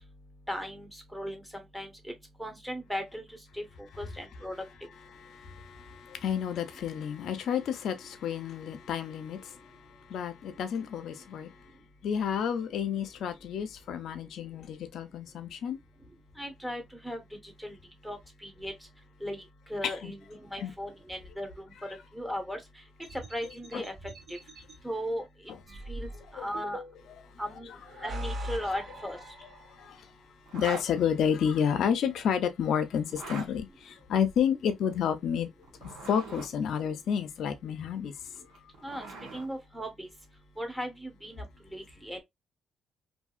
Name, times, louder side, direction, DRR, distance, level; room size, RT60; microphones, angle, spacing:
voice 1, 0.5-1.4 1.7-1.9 2.4-3.2 3.5-3.6 4.0-4.5 16.4-17.2 17.6-17.7 18.0-18.7 19.2-19.4 19.7-21.7 22.1-22.6 23.3-23.9 24.3-24.4 24.8-25.2 25.9-26.8 27.4-27.7 28.0-29.2 38.8-40.1 40.6-41.4 41.7-42.2, equal, 5° right, 1.0 m, -37 dB
voice 2, 5.1-11.6 12.0-15.8 19.8-20.1 20.6-20.7 23.7-23.8 26.3-26.4 28.0-28.1 29.8-30.1 30.5-35.5 35.8-38.1, left 8 dB, 70° left, 0.6 m, -30 dB
sound 1, 23.0-24.7 25.7-27.2 27.8-30.0, equal, 50° right, 1.5 m, -41 dB
Zipper (clothing), 30.5-30.9 33.0-33.5 35.6-36.5 38.4-39.5, right 3 dB, 90° right, 1.3 m, -41 dB
2.7 x 2.7 x 2.4 m
cardioid pair, 90°, 0 cm